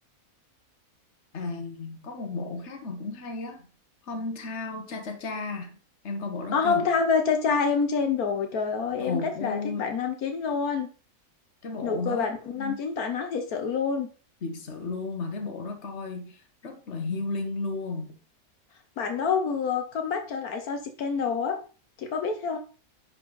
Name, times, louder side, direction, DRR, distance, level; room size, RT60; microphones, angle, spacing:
voice 1, 1.3-3.7 4.1-5.8 6.0-6.9 9.0-9.9 11.6-12.8 14.4-18.1, left 3 dB, 50° left, 1.6 m, -34 dB
voice 2, 6.5-10.9 11.8-14.1 19.0-21.6 22.0-22.6, left 5 dB, 85° left, 1.5 m, -27 dB
10.0 x 4.4 x 4.0 m
omnidirectional pair, 1.5 m